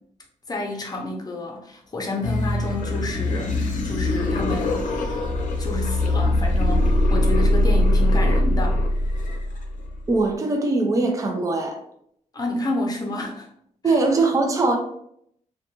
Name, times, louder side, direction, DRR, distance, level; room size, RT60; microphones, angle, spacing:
voice 1, 0.5-5.0 5.6-8.8 12.3-13.5 13.8-14.0, left 1 dB, 30° left, 0 dB, 0.6 m, -30 dB
sound 1, 2.2-10.2, left 1 dB, 90° left, 0.5 m, -22 dB
voice 2, 10.1-11.8 13.8-14.8, right 3 dB, 25° right, 3 dB, 0.4 m, -21 dB
2.6 x 2.2 x 2.8 m, 0.70 s
cardioid pair, 110°, 13 cm